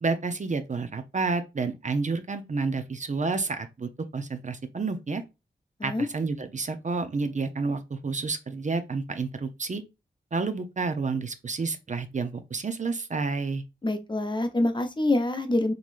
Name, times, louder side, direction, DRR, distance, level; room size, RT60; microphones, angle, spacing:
voice 1, 0.0-5.2 5.8-9.8 10.3-13.6, right 4 dB, 45° right, 0.5 m, -30 dB
voice 2, 13.8-15.7, left 2 dB, 25° left, 0.7 m, -25 dB
3.8 x 3.1 x 2.4 m
wide cardioid pair, 70°, 18 cm